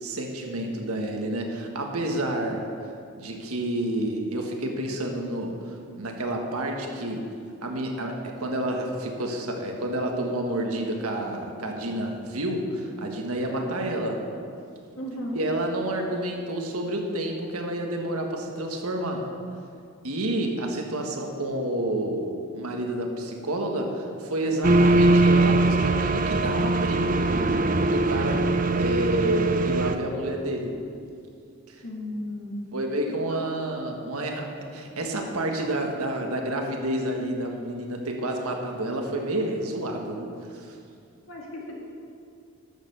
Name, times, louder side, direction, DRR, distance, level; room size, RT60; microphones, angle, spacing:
voice 1, 0.0-2.6 3.2-7.2 7.6-14.2 15.3-19.2 20.0-27.2 27.8-28.5 28.8-30.8 32.7-40.7, right 1 dB, 85° right, 2 dB, 1.5 m, -29 dB
voice 2, 15.0-15.4 31.8-32.6 33.3-33.6 41.3-41.8, left 1 dB, 60° left, -2 dB, 2.2 m, -35 dB
sound 1, 24.6-30.0, right 2 dB, 35° right, 0.5 m, -21 dB
11.5 x 6.8 x 6.9 m, 2.4 s
head